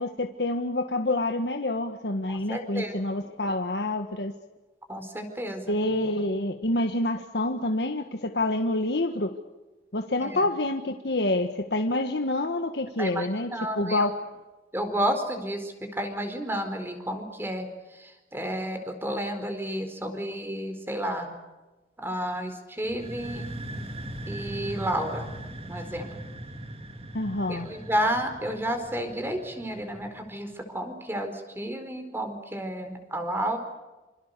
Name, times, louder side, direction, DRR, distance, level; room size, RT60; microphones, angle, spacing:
voice 1, 0.0-4.3 5.7-9.3 9.9-14.1 27.1-27.7, left 2 dB, 75° left, 5 dB, 1.5 m, -27 dB
voice 2, 2.3-3.0 4.9-5.8 10.2-10.4 13.0-14.1 14.7-21.3 22.0-23.6 24.3-25.4 25.7-26.1 27.5-33.6, equal, 15° right, 6 dB, 4.4 m, -31 dB
sound 1, 22.8-30.5, right 1 dB, 35° right, 2.4 m, -39 dB
27.5 x 27.0 x 6.8 m, 1.2 s
head